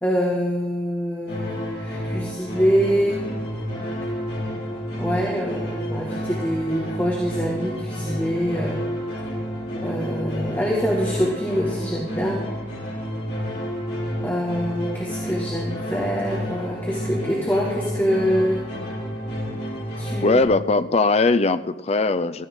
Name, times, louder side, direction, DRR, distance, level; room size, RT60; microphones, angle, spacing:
voice 1, 0.0-3.3 5.0-8.8 9.7-12.5 14.2-18.7 20.0-20.4, equal, 10° left, -3 dB, 1.7 m, -25 dB
sound 1, 1.3-20.4, equal, 55° left, 3.8 m, -30 dB
voice 2, 20.2-22.5, left 3 dB, 35° left, 13 dB, 0.5 m, -20 dB
16.5 x 14.5 x 3.7 m, 1.1 s
head